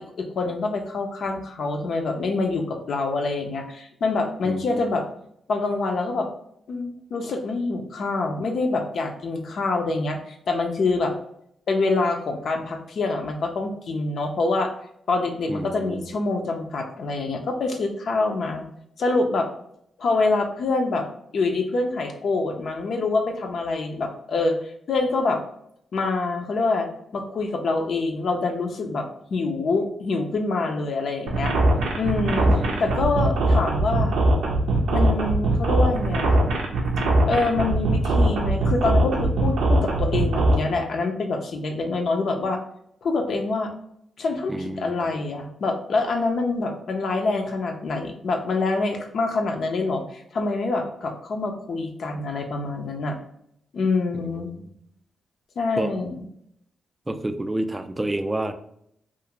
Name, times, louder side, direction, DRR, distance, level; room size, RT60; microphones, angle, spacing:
voice 1, 0.0-5.0 5.5-6.3 6.7-11.1 11.7-14.7 15.1-18.6 19.0-19.5 20.0-21.1 21.3-25.4 25.9-26.9 27.1-31.5 31.9-34.2 34.9-36.4 37.2-42.6 43.0-43.7 44.2-53.2 53.7-54.5 55.6-56.3, left 3 dB, 65° left, 3 dB, 0.4 m, -26 dB
voice 2, 4.4-4.8 15.5-16.1 32.3-33.0 44.5-44.9 54.1-54.7 55.8-55.9 57.1-58.5, right 1 dB, 20° right, 9 dB, 0.3 m, -30 dB
sound 1, 31.3-40.6, right 2 dB, 80° right, 0.5 m, -21 dB
2.4 x 2.4 x 2.9 m, 0.73 s
cardioid pair, 60°, 0 cm